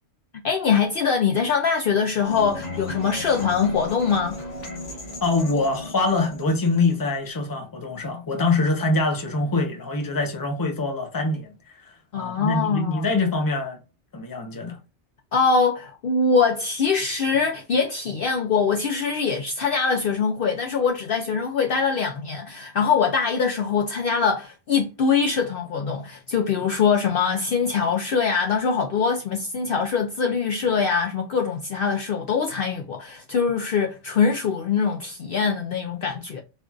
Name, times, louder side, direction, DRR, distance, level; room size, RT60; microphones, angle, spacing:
voice 1, 0.4-4.4 12.1-13.0 15.3-36.4, left 5 dB, 60° left, 0.6 m, -23 dB
sound 1, 2.2-7.3, left 1 dB, 85° left, 1.4 m, -36 dB
voice 2, 5.2-13.8 14.1-14.8, left 3 dB, 20° left, 0.7 m, -24 dB
4.3 x 2.5 x 2.3 m
omnidirectional pair, 1.2 m